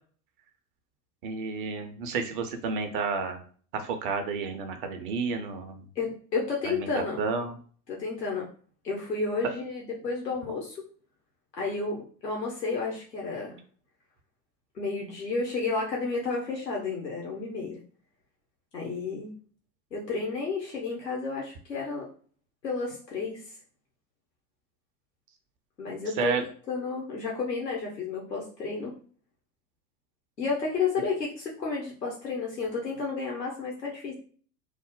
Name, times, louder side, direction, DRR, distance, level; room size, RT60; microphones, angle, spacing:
voice 1, 1.2-3.4 3.7-5.9 6.6-7.6 26.1-26.4, right 4 dB, 35° right, 6 dB, 0.4 m, -31 dB
voice 2, 6.0-7.2 7.9-8.5 8.8-10.8 11.6-13.5 14.7-17.8 18.7-19.3 19.9-22.1 22.6-23.4 25.8-26.3 26.7-28.9 30.4-34.1, left 4 dB, 80° left, -2 dB, 1.0 m, -31 dB
3.2 x 2.0 x 3.6 m, 0.43 s
figure-of-eight pair, 80°, 49 cm